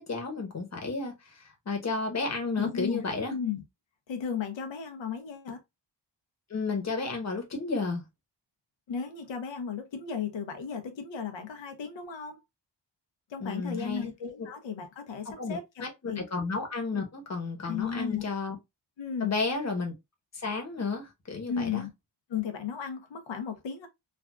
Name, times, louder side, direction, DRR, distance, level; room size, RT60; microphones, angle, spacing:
voice 1, 0.0-3.3 6.5-8.0 13.4-14.1 14.4-14.5 15.3-18.6 19.2-19.9 20.3-21.8, left 4 dB, 35° left, 1.0 m, -32 dB
voice 2, 2.6-3.0 3.3-3.6 4.1-5.6 8.9-12.4 13.3-16.2 17.6-18.2 19.0-19.4 21.5-21.9 22.3-23.9, left 6 dB, 80° left, 0.8 m, -35 dB
3.4 x 2.4 x 2.3 m
wide cardioid pair, 155°, 44 cm